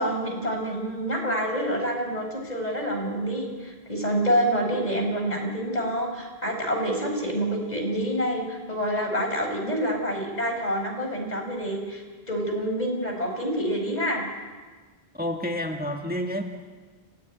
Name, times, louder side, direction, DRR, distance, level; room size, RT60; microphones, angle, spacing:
voice 1, 0.0-14.2, equal, 40° left, 2 dB, 5.2 m, -27 dB
voice 2, 15.1-16.4, equal, 10° right, 3 dB, 1.6 m, -29 dB
30.0 x 14.5 x 9.3 m, 1.4 s
omnidirectional pair, 1.0 m